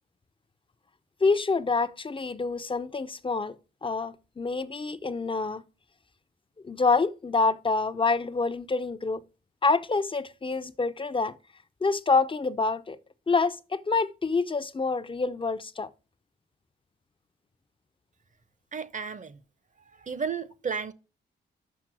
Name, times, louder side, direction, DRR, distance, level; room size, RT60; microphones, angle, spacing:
voice 1, 1.2-3.6 3.8-5.6 6.6-9.2 9.6-11.4 11.8-13.0 13.3-15.9, left 4 dB, 25° left, 0.6 m, -27 dB
voice 2, 18.7-19.4 19.9-20.9, right 6 dB, 40° right, 0.9 m, -33 dB
6.0 x 5.8 x 6.0 m
supercardioid pair, 55°, 20 cm